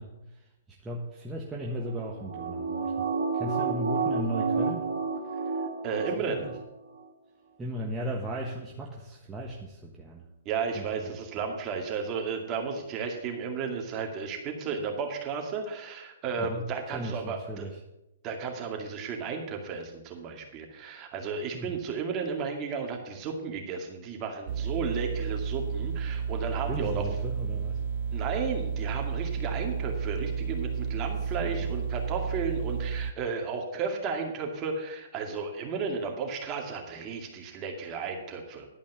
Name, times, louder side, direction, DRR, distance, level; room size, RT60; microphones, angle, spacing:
voice 1, 0.0-3.1 3.3-4.9 6.2-6.6 7.6-10.3 10.7-11.4 16.4-17.8 21.5-21.8 26.7-27.8 31.2-31.7, right 1 dB, 10° right, -2 dB, 1.3 m, -36 dB
sound 1, 1.8-6.6 7.0-7.1, right 4 dB, 70° right, 2.0 m, -30 dB
voice 2, 5.8-6.5 10.5-17.6 18.2-27.0 28.1-38.7, right 5 dB, 30° right, 2 dB, 2.2 m, -33 dB
sound 2, 24.5-33.1, right 6 dB, 55° right, 0.5 m, -32 dB
11.5 x 5.3 x 8.2 m, 0.91 s
hypercardioid pair, 140°, 0 cm